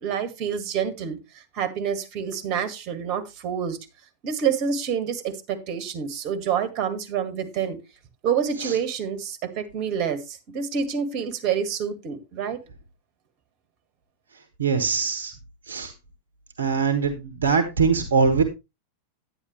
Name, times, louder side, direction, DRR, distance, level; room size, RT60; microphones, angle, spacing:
voice 1, 0.0-3.8 4.2-7.8 8.2-12.6, right 7 dB, 40° right, 1.9 m, -27 dB
voice 2, 14.6-15.3 15.7-15.9 16.6-18.4, right 5 dB, 70° right, 1.2 m, -22 dB
10.0 x 9.9 x 3.2 m
figure-of-eight pair, 90°, 0 cm